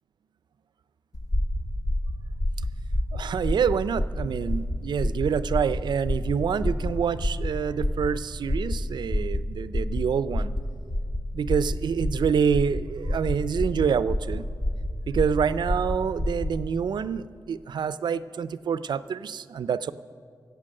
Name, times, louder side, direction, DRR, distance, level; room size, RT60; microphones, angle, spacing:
sound 1, 1.1-16.6, left 1 dB, 50° left, 1.3 m, -28 dB
voice 1, 3.1-10.5 11.3-14.5 15.1-19.9, right 7 dB, 80° right, 16 dB, 0.4 m, -27 dB
15.0 x 8.1 x 6.4 m, 2.1 s
cardioid pair, 55°, 7 cm